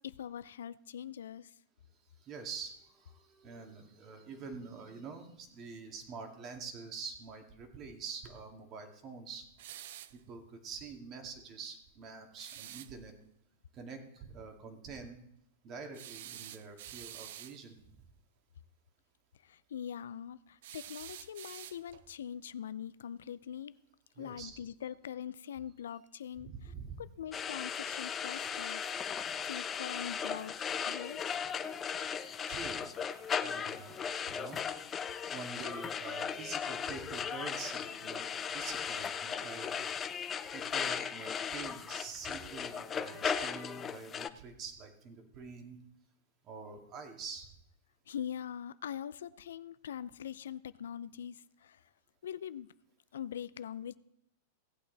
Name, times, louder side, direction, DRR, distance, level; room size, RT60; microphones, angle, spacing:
voice 1, 0.0-1.5 19.4-23.7 24.2-28.8 29.4-30.5 30.9-31.4 48.1-51.8 52.2-52.7 53.1-54.0, left 9 dB, 80° left, 17 dB, 0.4 m, -43 dB
voice 2, 2.2-9.5 10.1-13.1 13.7-15.2 15.6-18.0 24.2-24.6 26.4-27.0 30.9-31.0 32.5-32.9 33.2-34.6 35.3-39.9 40.5-45.8 46.4-47.5, right 5 dB, 40° right, 4 dB, 2.3 m, -46 dB
sound 1, 9.6-10.2 12.4-12.9 15.9-17.6 20.6-22.1, right 12 dB, 65° right, 0.5 m, -48 dB
sound 2, 27.3-44.3, left 7 dB, 25° left, 0.6 m, -37 dB
17.0 x 8.4 x 4.0 m, 0.76 s
hypercardioid pair, 110°, 0 cm